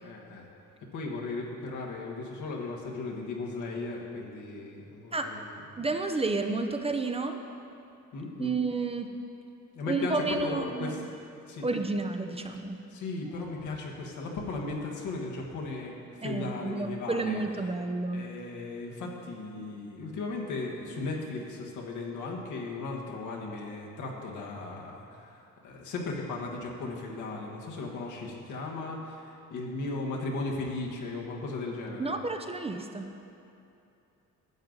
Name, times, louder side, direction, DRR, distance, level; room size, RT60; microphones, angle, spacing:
voice 1, 0.0-0.5 0.9-5.6 8.1-8.5 9.7-11.0 11.4-11.7 12.9-17.4 18.1-32.1, left 3 dB, 80° left, -2 dB, 1.5 m, -36 dB
voice 2, 5.8-7.4 8.4-9.1 9.9-10.9 11.6-12.8 16.2-18.3 32.0-33.1, right 3 dB, 20° right, 5 dB, 0.6 m, -30 dB
11.0 x 7.7 x 3.9 m, 2.7 s
cardioid pair, 90°, 30 cm